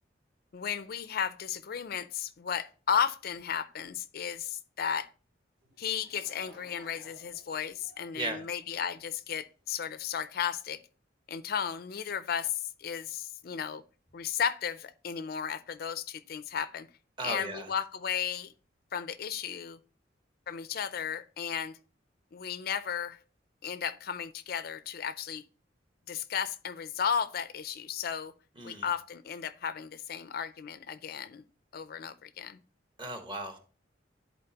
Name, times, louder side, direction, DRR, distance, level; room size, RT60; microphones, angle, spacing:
voice 1, 0.5-5.1 5.8-10.8 11.3-13.8 14.1-16.9 17.2-18.5 18.9-19.8 20.5-21.8 22.3-23.2 23.6-25.4 26.1-28.3 28.6-31.4 31.7-32.6, left 7 dB, 55° left, 0.4 m, -34 dB
Laughter / Crowd, 5.6-9.4, right 1 dB, 80° right, 2.7 m, -58 dB
voice 2, 8.1-8.5 17.2-17.7 28.6-28.9 33.0-33.6, right 2 dB, 25° right, 1.1 m, -36 dB
11.0 x 4.2 x 2.9 m
head